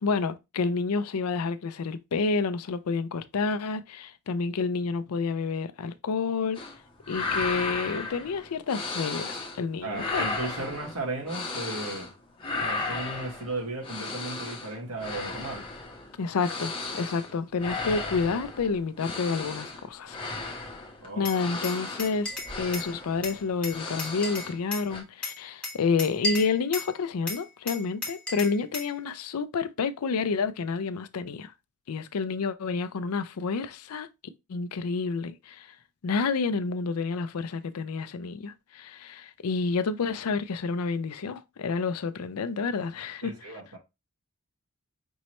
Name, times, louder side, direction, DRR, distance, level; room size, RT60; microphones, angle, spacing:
voice 1, 0.0-6.6 7.1-10.3 16.2-20.2 21.2-31.5 31.9-34.1 34.5-35.7 36.0-43.3, left 4 dB, 80° left, 0.5 m, -29 dB
sound 1, 6.5-6.8 7.0-9.6 9.9-12.1 12.4-24.6 24.9-25.0, left 3 dB, 25° left, 1.1 m, -35 dB
voice 2, 9.8-12.1 12.6-15.7 21.0-21.3 43.2-43.8, right 2 dB, 80° right, 1.8 m, -35 dB
Glass, 21.2-22.9 23.2-24.9 25.2-26.9 27.3-28.9, left 1 dB, 5° left, 1.4 m, -34 dB
5.4 x 3.1 x 3.0 m
head